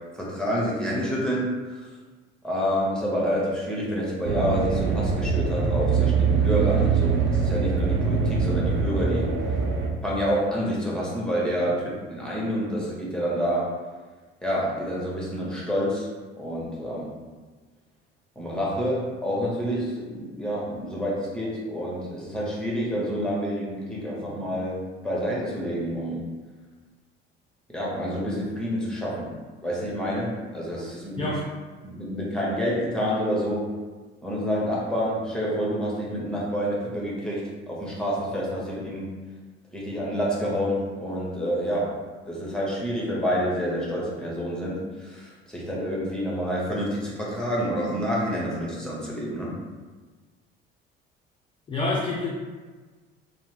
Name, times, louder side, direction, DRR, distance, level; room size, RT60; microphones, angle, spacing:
voice 1, 0.2-1.8 2.4-9.3 10.0-13.7 14.4-16.1 16.4-17.1 18.4-24.8 25.0-26.2 27.7-29.3 29.6-31.3 31.8-33.7 34.2-39.1 39.7-41.9 42.3-49.5, equal, 5° left, -5 dB, 0.9 m, -28 dB
sound 1, 4.3-9.9, right 5 dB, 40° right, 0.4 m, -23 dB
voice 2, 31.2-31.5 51.7-52.3, left 2 dB, 20° left, -3 dB, 0.4 m, -27 dB
2.7 x 2.1 x 3.1 m, 1.3 s
figure-of-eight pair, 55°, 29 cm